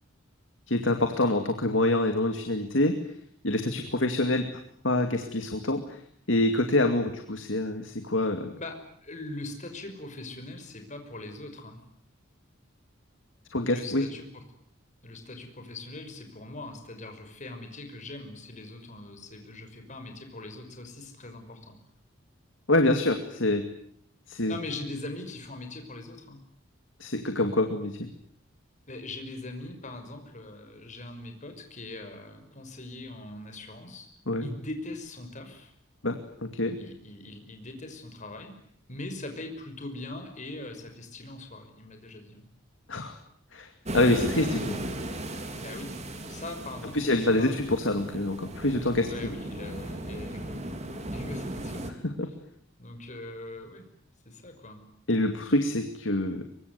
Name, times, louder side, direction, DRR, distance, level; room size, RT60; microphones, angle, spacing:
voice 1, 0.7-3.0 3.4-4.5 4.8-6.0 6.3-8.5 13.5-14.0 22.7-23.6 24.3-24.6 27.0-28.1 34.3-34.5 36.0-36.8 42.9-43.2 43.5-43.7 43.9-44.8 46.9-49.1 52.2-52.3 55.1-56.5, left 2 dB, 70° left, 6 dB, 2.4 m, -26 dB
voice 2, 8.6-11.8 13.7-14.4 15.0-21.8 24.5-26.4 28.9-34.1 34.4-35.7 36.8-38.5 38.9-42.5 45.5-45.9 46.3-47.6 47.9-48.0 49.1-52.0 52.8-53.9 54.3-54.8, left 2 dB, 40° left, 6 dB, 5.8 m, -41 dB
sound 1, 43.8-51.9, right 1 dB, 35° right, 3.7 m, -36 dB
24.5 x 23.0 x 9.5 m, 0.63 s
head